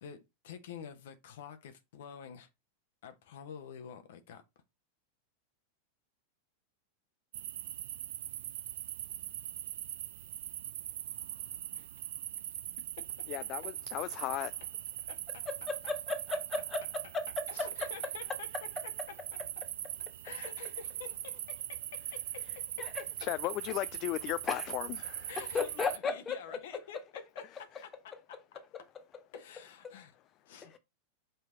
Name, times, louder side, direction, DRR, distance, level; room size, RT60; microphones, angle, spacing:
voice 1, 0.0-2.5 3.0-4.4 11.7-11.9 15.1-15.4 17.5-18.5 20.2-21.8 22.1-22.4 22.8-22.9 25.3-27.5 27.8-28.6 29.3-30.1 30.5-30.7, left 7 dB, 55° left, 1.0 m, -48 dB
sound 1, 7.3-26.0, right 12 dB, 55° right, 0.5 m, -41 dB
voice 2, 13.3-14.5 23.2-25.3 27.7-27.8, left 15 dB, 40° left, 0.3 m, -36 dB
voice 3, 15.4-17.7 22.8-23.0 24.5-24.7 25.4-26.6 29.8-29.9 30.7-30.8, left 4 dB, 20° left, 1.6 m, -35 dB
5.7 x 4.5 x 4.2 m
figure-of-eight pair, 90°, 0 cm